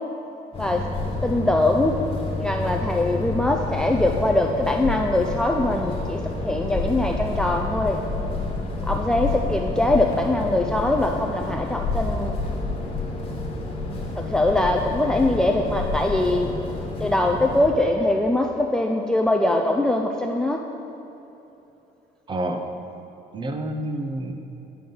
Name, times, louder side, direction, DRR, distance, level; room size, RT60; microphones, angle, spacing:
sound 1, 0.5-17.7, left 2 dB, 35° left, 1.3 m, -29 dB
voice 1, 1.2-2.0 2.4-8.0 8.9-12.4 14.2-16.5 17.0-20.6, left 1 dB, 5° left, 2 dB, 0.3 m, -22 dB
voice 2, 22.3-22.7 23.3-24.3, right 1 dB, 30° right, 5 dB, 0.7 m, -28 dB
10.5 x 5.3 x 3.8 m, 3.0 s
cardioid pair, 110°, 17 cm